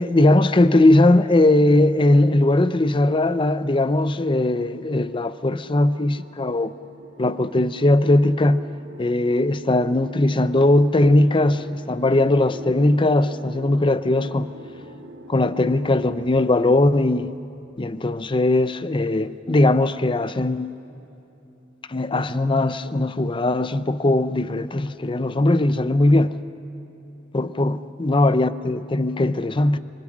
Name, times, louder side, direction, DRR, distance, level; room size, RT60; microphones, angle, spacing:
voice 1, 0.0-6.7 7.2-8.6 9.0-14.5 15.3-17.3 17.8-20.7 21.9-26.3 27.3-29.8, left 2 dB, 25° left, 0.6 m, -19 dB
sound 1, 4.3-17.1, equal, 75° right, 2.3 m, -43 dB
26.0 x 25.0 x 6.2 m
head